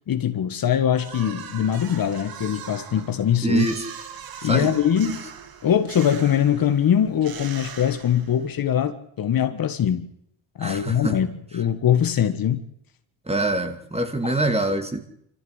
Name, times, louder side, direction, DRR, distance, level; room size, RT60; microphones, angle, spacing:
voice 1, 0.1-3.7 4.4-5.2 5.6-10.1 10.6-12.6 14.2-14.3, left 9 dB, 45° left, 1.7 m, -22 dB
sound 1, 0.9-8.6, right 7 dB, 50° right, 2.1 m, -41 dB
voice 2, 3.4-3.8 4.4-5.1 10.6-11.2 13.3-15.0, right 2 dB, 15° right, 2.8 m, -25 dB
24.5 x 14.5 x 8.2 m
supercardioid pair, 90°, 46 cm